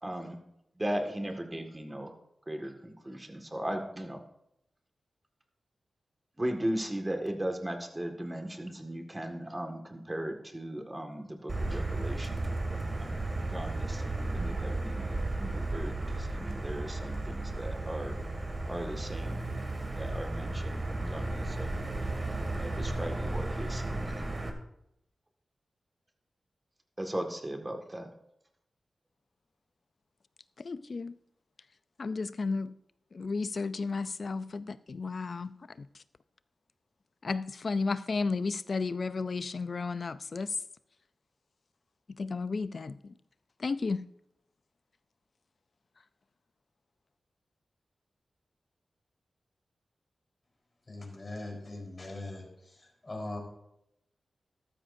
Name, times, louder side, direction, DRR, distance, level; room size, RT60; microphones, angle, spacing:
voice 1, 0.0-0.4 0.8-2.1 2.5-4.2 6.4-13.2 13.5-18.2 18.7-19.4 19.9-21.8 22.6-24.0 27.0-28.1, right 1 dB, 20° right, 1.8 m, -37 dB
Motor vehicle (road), 11.5-24.5, right 2 dB, 40° right, 2.1 m, -34 dB
voice 2, 30.6-31.2 32.0-32.8 33.1-35.9 37.2-40.5 42.2-43.1 43.6-44.1, left 4 dB, 55° left, 0.4 m, -33 dB
voice 3, 50.9-53.4, left 2 dB, 40° left, 4.1 m, -41 dB
13.5 x 12.5 x 2.7 m
cardioid pair, 70°, 0 cm